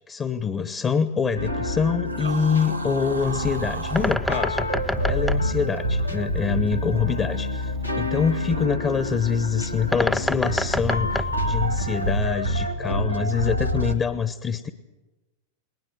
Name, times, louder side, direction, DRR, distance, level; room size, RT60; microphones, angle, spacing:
voice 1, 0.1-4.6 5.1-7.7 8.0-14.7, left 6 dB, 20° left, 12 dB, 1.0 m, -25 dB
sound 1, 1.4-14.0, equal, 90° left, 1.4 m, -28 dB
sound 2, 2.1-4.2, right 3 dB, 85° right, 1.5 m, -35 dB
Bird, 3.1-12.3, left 1 dB, 5° left, 0.7 m, -30 dB
20.0 x 20.0 x 7.8 m, 1.1 s
figure-of-eight pair, 90°, 0 cm